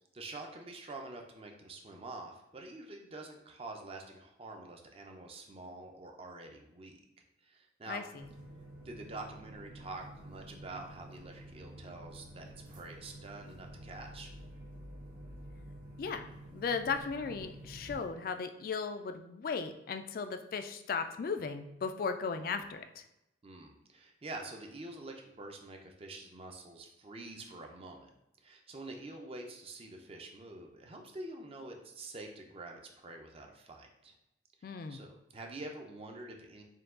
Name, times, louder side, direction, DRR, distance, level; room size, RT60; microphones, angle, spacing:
voice 1, 0.1-7.0 7.4-8.0 8.8-14.3 23.4-28.1 28.4-34.1 34.6-36.6, right 2 dB, 30° right, 3 dB, 0.5 m, -47 dB
voice 2, 7.9-8.2 16.0-23.0 34.6-35.0, left 5 dB, 50° left, 8 dB, 0.3 m, -36 dB
sound 1, 8.2-18.0, right 1 dB, 45° right, 1.4 m, -50 dB
4.5 x 2.3 x 3.6 m, 0.89 s
head